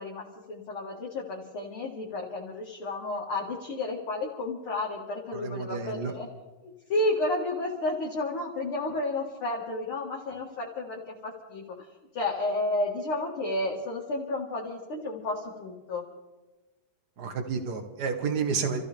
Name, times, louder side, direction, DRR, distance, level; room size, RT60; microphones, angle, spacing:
voice 1, 0.0-6.3 6.6-11.9 12.1-16.1, left 2 dB, 45° left, -3 dB, 2.1 m, -32 dB
voice 2, 5.3-6.1 17.2-18.8, right 5 dB, 75° right, 6 dB, 0.9 m, -30 dB
28.0 x 15.0 x 3.5 m, 1.1 s
omnidirectional pair, 3.9 m